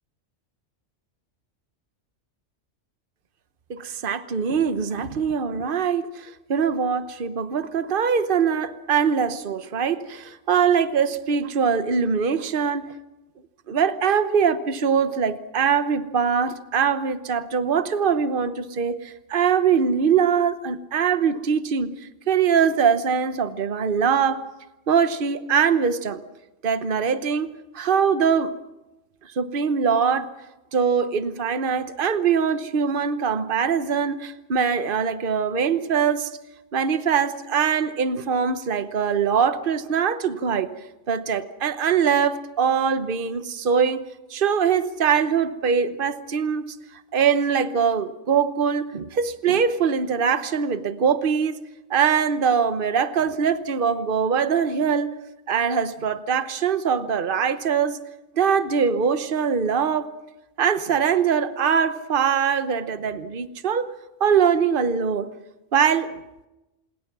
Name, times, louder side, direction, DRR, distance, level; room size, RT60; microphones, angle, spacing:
voice 1, 3.7-12.9 13.7-21.9 22.3-24.4 24.9-26.2 26.6-28.5 29.4-30.3 30.7-36.3 36.7-40.7 41.1-44.0 44.3-46.7 47.1-51.6 51.9-55.2 55.5-58.0 58.3-60.1 60.6-63.9 64.2-65.3 65.7-66.1, right 6 dB, 50° right, 11 dB, 1.2 m, -22 dB
27.0 x 20.5 x 6.1 m, 0.98 s
omnidirectional pair, 1.2 m